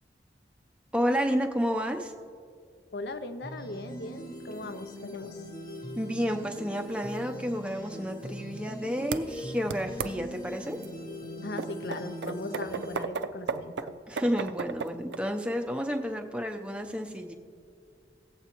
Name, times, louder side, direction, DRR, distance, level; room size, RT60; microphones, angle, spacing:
voice 1, 0.9-2.1 6.0-10.8 14.1-17.3, equal, 5° right, 4 dB, 0.6 m, -30 dB
voice 2, 2.9-5.4 11.4-13.9, left 2 dB, 70° left, 10 dB, 0.5 m, -39 dB
sound 1, 3.4-13.0, equal, 25° left, 0.8 m, -41 dB
sound 2, 9.1-9.2 9.7-10.1 10.8-10.9 11.6-15.2, right 5 dB, 85° right, 0.4 m, -33 dB
18.0 x 8.0 x 2.9 m, 2.2 s
head